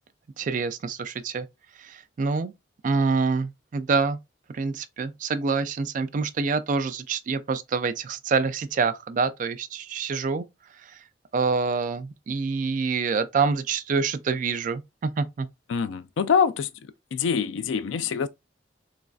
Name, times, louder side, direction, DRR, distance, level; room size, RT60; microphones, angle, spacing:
voice 1, 0.4-1.5 1.8-2.5 2.8-4.2 4.5-10.4 10.8-11.0 11.3-15.5, right 4 dB, 45° right, 0.3 m, -26 dB
voice 2, 15.7-16.7 17.1-18.3, left 6 dB, 85° left, 0.4 m, -24 dB
3.0 x 2.5 x 2.3 m
head